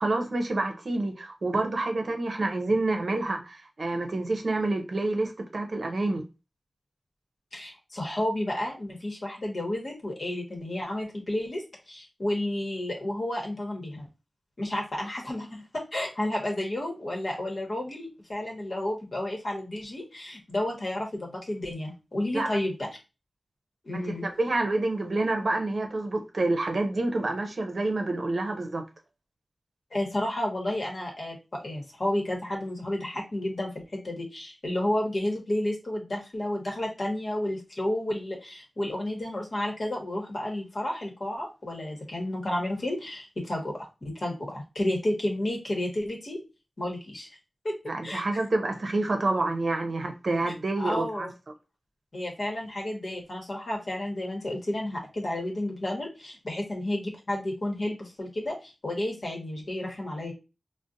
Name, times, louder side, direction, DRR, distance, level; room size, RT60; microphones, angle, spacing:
voice 1, 0.0-6.2 22.3-22.6 23.9-28.8 47.9-51.3, right 2 dB, 65° right, 0.6 m, -28 dB
voice 2, 7.5-14.1 14.6-22.7 23.8-24.3 29.9-46.4 46.8-47.3 47.6-47.8 48.0-48.2 50.8-51.3 52.1-60.3, left 1 dB, 55° left, 1.0 m, -31 dB
3.8 x 2.1 x 2.6 m
wide cardioid pair, 85°, 0 cm